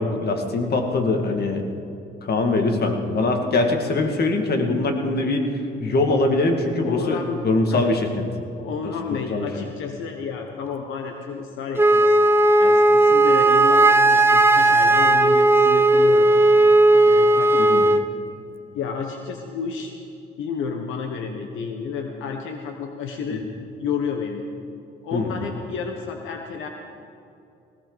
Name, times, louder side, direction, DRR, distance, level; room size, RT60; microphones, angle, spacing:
voice 1, 0.0-1.6 2.2-5.5 5.8-7.2 7.4-8.1 8.8-9.5 17.6-17.8 25.1-25.3, left 2 dB, 55° left, 4 dB, 2.2 m, -22 dB
voice 2, 6.8-7.9 8.5-12.2 12.6-16.3 16.9-18.0 18.7-20.0 20.4-23.4 23.8-24.4 25.0-26.7, left 6 dB, 85° left, 4 dB, 1.2 m, -31 dB
Wind instrument woodwind instrument, 11.8-18.0, right 2 dB, 10° right, 0.8 m, -15 dB
19.5 x 18.0 x 4.1 m, 2.7 s
cardioid pair, 90°, 20 cm